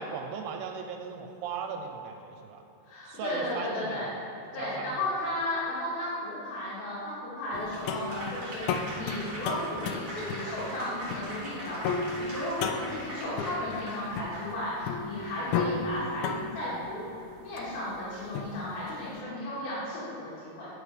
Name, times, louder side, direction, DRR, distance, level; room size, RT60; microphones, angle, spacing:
voice 1, 0.0-2.6 3.0-4.1 4.6-5.1, right 6 dB, 85° right, 4 dB, 2.5 m, -38 dB
voice 2, 2.8-4.1 4.5-17.0 17.4-20.7, left 1 dB, 70° left, -11 dB, 3.6 m, -34 dB
sound 1, 7.5-19.1, left 5 dB, 85° left, 2.2 m, -35 dB
Applause / Crowd, 7.7-14.9, right 1 dB, 35° right, 1.8 m, -41 dB
9.4 x 5.1 x 4.9 m, 2.9 s
omnidirectional pair, 4.7 m